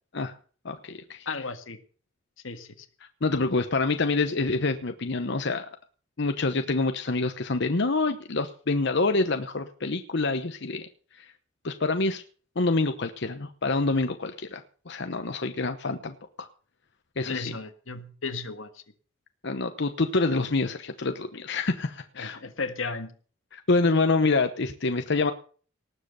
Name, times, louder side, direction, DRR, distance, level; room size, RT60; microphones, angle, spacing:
voice 1, 0.6-1.3 3.2-5.7 6.2-10.9 11.1-11.2 11.6-12.2 12.6-16.5 17.2-17.4 19.4-22.4 23.5-25.3, left 3 dB, 60° left, 8 dB, 1.0 m, -26 dB
voice 2, 1.2-1.8 2.4-2.9 17.2-18.8 22.2-23.1, left 4 dB, 85° left, 9 dB, 1.8 m, -34 dB
19.0 x 7.8 x 6.7 m, 0.42 s
head